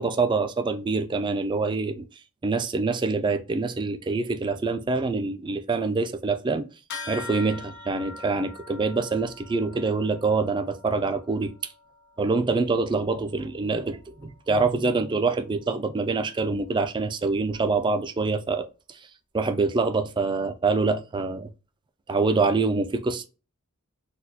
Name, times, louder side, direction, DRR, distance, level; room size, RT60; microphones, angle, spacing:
voice 1, 0.0-2.1 2.4-6.7 7.1-11.5 12.2-18.7 19.3-21.5 22.1-23.2, right 3 dB, 20° right, 0.3 m, -25 dB
sound 1, 6.9-16.7, left 4 dB, 55° left, 0.9 m, -45 dB
4.1 x 2.3 x 2.6 m
head